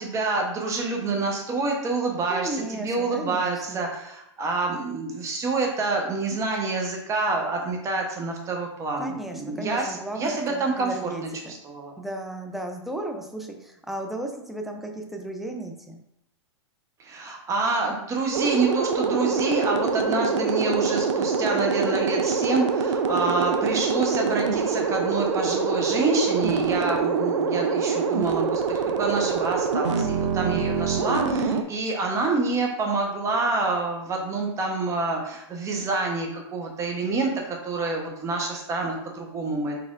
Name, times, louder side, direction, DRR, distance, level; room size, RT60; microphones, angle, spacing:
voice 1, 0.0-11.9 17.0-39.8, right 3 dB, 20° right, 1 dB, 0.9 m, -27 dB
voice 2, 2.3-3.9 9.0-11.5 12.0-16.0 30.4-30.7, right 1 dB, ahead, 2 dB, 0.4 m, -35 dB
sound 1, 18.3-31.6, right 5 dB, 85° right, 0.5 m, -25 dB
4.3 x 4.2 x 2.5 m, 0.81 s
hypercardioid pair, 130°, 15 cm